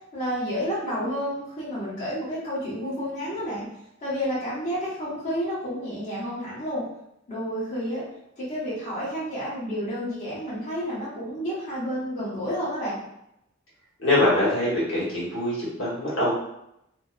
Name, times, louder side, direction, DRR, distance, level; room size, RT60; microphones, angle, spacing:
voice 1, 0.1-3.7 4.0-6.8 7.3-8.0 8.4-13.0, equal, 35° left, -11 dB, 1.0 m, -30 dB
voice 2, 14.0-16.3, left 1 dB, 70° left, -7 dB, 1.2 m, -23 dB
2.5 x 2.0 x 2.4 m, 0.80 s
head